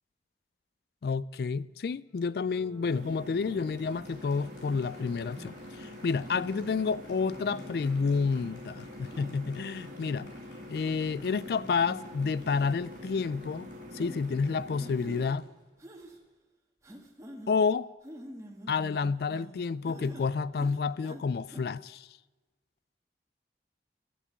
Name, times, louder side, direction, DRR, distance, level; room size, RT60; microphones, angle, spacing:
voice 1, 1.0-10.3 10.7-15.4 17.5-17.9 18.7-22.1, left 5 dB, 60° left, 0.3 m, -30 dB
Applause, 2.1-16.2, left 1 dB, 90° left, 3.5 m, -57 dB
sound 1, 2.8-15.3, left 1 dB, 45° right, 1.4 m, -45 dB
sound 2, 5.4-5.5 6.2-6.7 7.3-7.7 8.3-8.5 9.1-9.4 9.9-10.3 10.9-11.0 11.3-11.5 11.9-12.0 12.4-12.7 13.1-13.2 14.0-14.2 14.8-15.3 15.8-16.2 16.8-17.6 18.0-19.5 19.9-20.3 20.5-21.2 21.5-21.6, right 1 dB, 15° right, 1.5 m, -47 dB
12.0 x 10.0 x 8.1 m
head